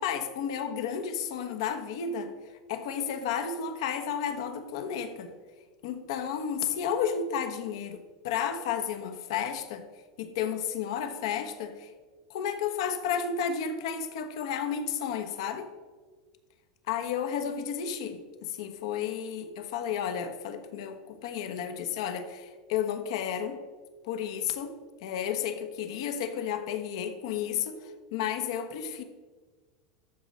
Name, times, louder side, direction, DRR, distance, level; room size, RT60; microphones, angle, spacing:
voice 1, 0.0-2.3 2.7-5.3 5.8-9.9 10.2-11.9 12.3-15.7 16.9-23.6 24.0-29.0, left 8 dB, 70° left, 7 dB, 1.3 m, -32 dB
13.5 x 6.2 x 4.3 m, 1.4 s
supercardioid pair, 155°, 3 cm